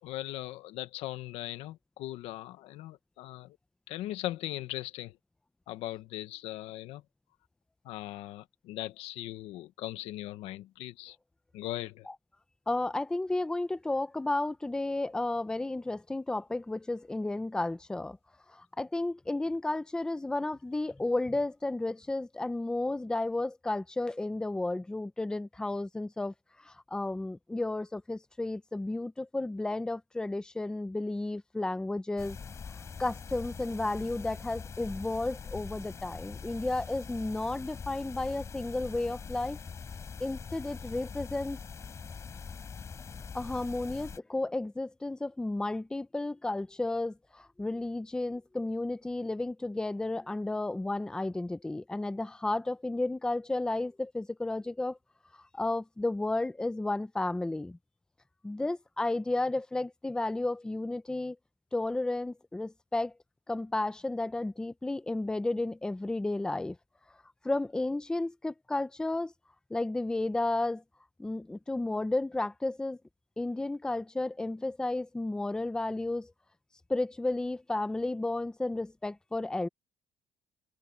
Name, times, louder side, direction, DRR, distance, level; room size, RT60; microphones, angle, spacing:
voice 1, 0.0-3.6 3.9-5.2 5.7-7.0 7.8-11.2 11.5-12.1, left 15 dB, 85° left, 1.4 m, -39 dB
voice 2, 12.7-18.2 18.5-26.3 26.6-32.4 33.0-39.6 40.2-41.6 43.3-55.0 55.5-57.8 58.4-61.4 61.7-63.1 63.5-66.8 67.4-69.3 69.7-70.8 71.2-73.0 73.4-76.3 76.9-79.7, left 2 dB, 10° left, 0.8 m, -32 dB
sound 1, 32.2-44.2, left 6 dB, 30° left, 5.6 m, -43 dB
cardioid pair, 145°, 10 cm